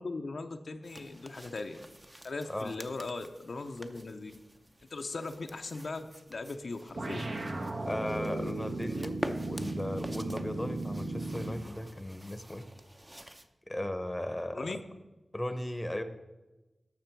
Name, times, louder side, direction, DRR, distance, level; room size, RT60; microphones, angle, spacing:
voice 1, 0.0-1.8 2.2-4.3 4.9-7.3 14.5-14.8, left 3 dB, 70° left, 5 dB, 0.6 m, -39 dB
sound 1, 0.8-13.5, right 1 dB, 20° right, 0.7 m, -47 dB
sound 2, 7.0-11.7, right 2 dB, 65° right, 1.1 m, -36 dB
voice 2, 7.9-12.7 13.7-14.8 15.3-16.0, left 1 dB, 15° left, 9 dB, 0.8 m, -36 dB
12.0 x 6.6 x 4.6 m, 1.1 s
wide cardioid pair, 65°, 0 cm